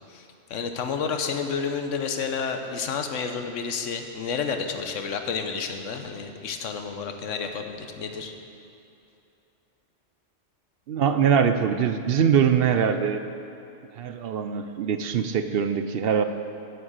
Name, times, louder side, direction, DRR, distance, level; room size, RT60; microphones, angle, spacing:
voice 1, 0.1-8.3, left 5 dB, 80° left, 6 dB, 1.2 m, -30 dB
voice 2, 10.9-13.2 14.0-16.2, right 7 dB, 60° right, 9 dB, 0.7 m, -23 dB
8.0 x 7.6 x 8.6 m, 2.7 s
omnidirectional pair, 1.3 m